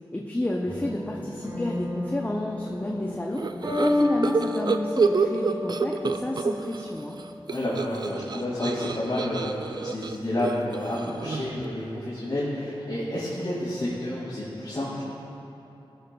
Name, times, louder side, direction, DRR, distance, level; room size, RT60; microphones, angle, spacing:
voice 1, 0.1-3.5 3.8-7.2, left 1 dB, 15° left, -1 dB, 0.6 m, -30 dB
sound 1, 0.6-9.7, left 1 dB, 25° right, 1.7 m, -32 dB
sound 2, 3.4-6.8 7.1-11.6, right 4 dB, 50° right, 0.4 m, -28 dB
voice 2, 7.5-15.0, left 1 dB, 45° left, -9 dB, 2.1 m, -30 dB
17.5 x 6.7 x 2.2 m, 2.9 s
wide cardioid pair, 70°, 9 cm